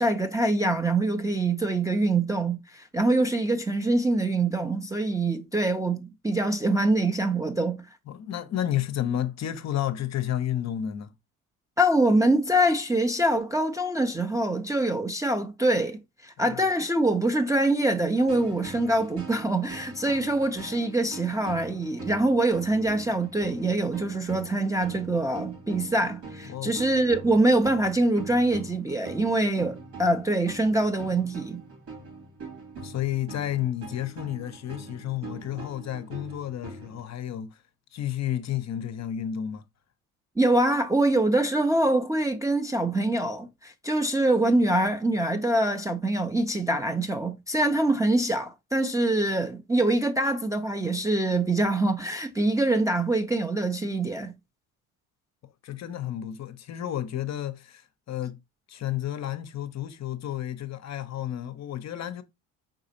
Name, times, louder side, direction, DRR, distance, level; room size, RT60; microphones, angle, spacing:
voice 1, 0.0-7.8 11.8-31.6 40.4-54.3, right 1 dB, 10° right, 0.5 m, -24 dB
voice 2, 8.1-11.1 16.4-16.6 26.5-26.8 32.8-37.6 37.9-39.6 55.6-58.4 58.7-62.2, left 11 dB, 40° left, 0.6 m, -31 dB
sound 1, 18.1-37.0, right 3 dB, 65° right, 2.4 m, -43 dB
4.8 x 3.7 x 2.7 m
hypercardioid pair, 60°, 42 cm